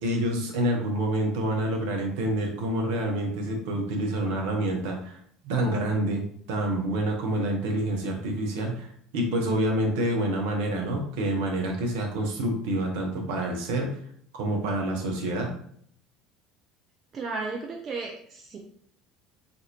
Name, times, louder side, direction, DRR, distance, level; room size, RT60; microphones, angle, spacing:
voice 1, 0.0-5.2 5.4-6.2 6.5-8.9 9.1-14.0 14.3-15.5, right 1 dB, 60° right, 2 dB, 0.8 m, -27 dB
voice 2, 17.1-18.6, right 3 dB, 35° right, 1 dB, 0.5 m, -34 dB
4.0 x 2.6 x 2.9 m, 0.63 s
figure-of-eight pair, 65°, 0 cm